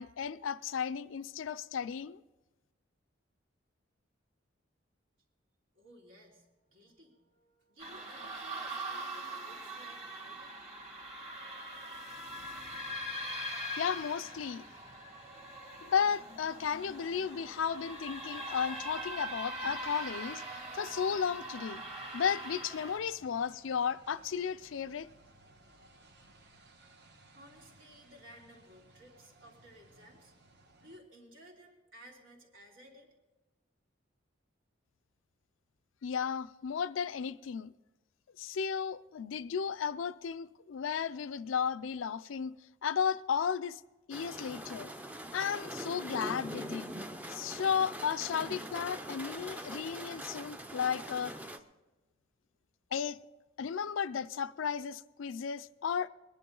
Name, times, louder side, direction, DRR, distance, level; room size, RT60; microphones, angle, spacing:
voice 1, 0.0-2.2 13.8-14.6 15.8-20.4 20.7-21.8 22.1-25.1 36.0-37.7 38.4-42.6 42.8-43.8 44.1-44.9 45.3-46.9 47.3-51.3 52.9-53.2 53.6-56.1, left 7 dB, 85° left, 0.4 m, -34 dB
voice 2, 5.7-10.7 27.3-30.3 30.8-33.1, equal, 80° right, 3.0 m, -57 dB
sound 1, 7.8-23.0, right 1 dB, 35° right, 2.2 m, -42 dB
sound 2, 12.3-31.0, right 2 dB, 60° right, 1.3 m, -61 dB
sound 3, 44.1-51.6, right 1 dB, 10° right, 0.5 m, -43 dB
20.5 x 10.5 x 3.9 m
head